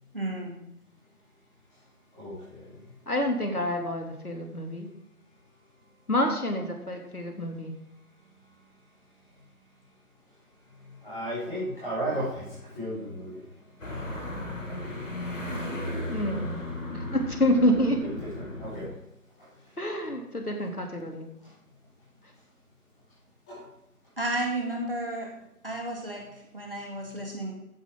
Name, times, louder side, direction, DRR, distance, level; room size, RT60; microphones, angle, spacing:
voice 1, 0.1-0.6 24.2-25.4 25.6-27.5, right 1 dB, 35° right, 0 dB, 2.3 m, -32 dB
voice 2, 2.1-2.8 10.8-13.4 14.6-15.0 16.5-16.6 18.0-18.9 23.5-23.6, right 1 dB, 5° left, -17 dB, 4.1 m, -35 dB
voice 3, 3.1-4.9 6.1-7.7 16.1-16.6 16.9-18.0 19.8-21.3, equal, 70° left, 2 dB, 3.2 m, -27 dB
sound 1, 13.8-18.9, left 1 dB, 55° left, 3.0 m, -35 dB
15.0 x 10.5 x 3.9 m, 0.83 s
figure-of-eight pair, 170°, 46 cm